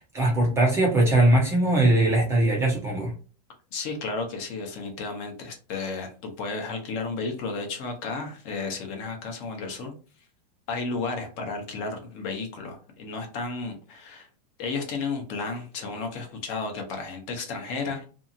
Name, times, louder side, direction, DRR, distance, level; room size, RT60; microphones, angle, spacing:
voice 1, 0.0-3.1, right 1 dB, 10° right, -1 dB, 0.5 m, -21 dB
voice 2, 3.7-9.9 10.7-14.3 14.6-18.0, left 4 dB, 35° left, 4 dB, 0.7 m, -33 dB
2.7 x 2.4 x 2.6 m, 0.37 s
supercardioid pair, 155°, 21 cm